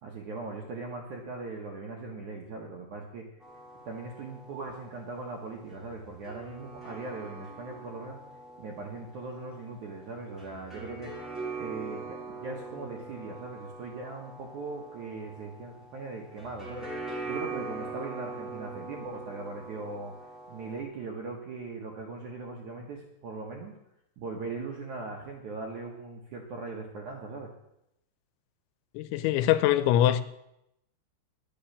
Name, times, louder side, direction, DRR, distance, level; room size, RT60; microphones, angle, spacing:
voice 1, 0.0-3.3 3.8-8.2 8.6-11.3 11.6-16.9 17.2-20.1 20.5-23.8 24.2-27.5, right 3 dB, 70° right, 1.9 m, -39 dB
sound 1, 3.4-20.8, right 3 dB, ahead, 2.3 m, -42 dB
voice 2, 28.9-30.2, left 12 dB, 90° left, 3.0 m, -23 dB
11.5 x 8.7 x 7.1 m
omnidirectional pair, 5.2 m